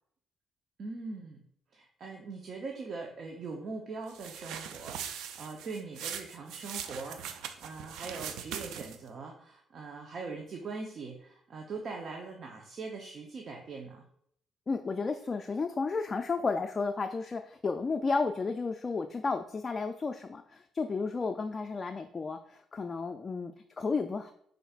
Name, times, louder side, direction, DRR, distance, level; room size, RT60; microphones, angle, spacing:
voice 1, 0.8-1.4 1.7-14.1, right 4 dB, 55° right, 1 dB, 0.7 m, -42 dB
sound 1, 4.1-9.1, right 8 dB, 90° right, 0.4 m, -41 dB
voice 2, 14.7-24.3, left 4 dB, 35° left, 5 dB, 0.3 m, -32 dB
5.7 x 3.9 x 2.4 m, 0.68 s
cardioid pair, 90°, 0 cm